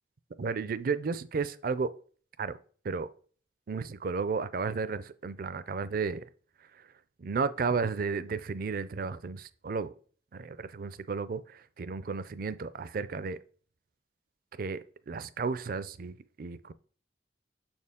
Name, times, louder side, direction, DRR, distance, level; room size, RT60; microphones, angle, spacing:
voice 1, 0.4-1.9 2.4-2.6 2.8-3.1 3.7-6.2 7.2-9.9 10.3-13.4 14.6-14.8 15.1-16.7, right 5 dB, 50° right, 0.4 m, -33 dB
6.8 x 4.4 x 3.6 m
head